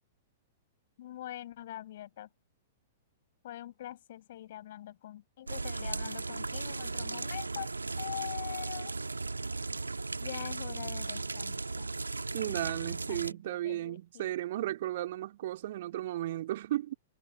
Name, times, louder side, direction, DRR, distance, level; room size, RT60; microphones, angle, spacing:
voice 1, 1.0-2.3 3.4-7.7 8.0-8.9 10.2-11.9 13.1-14.3, left 13 dB, 55° left, 5.5 m, -43 dB
sound 1, 5.5-13.3, right 3 dB, 80° right, 1.8 m, -36 dB
voice 2, 12.3-17.0, right 14 dB, 50° right, 2.7 m, -34 dB
figure-of-eight pair, 105°, 0 cm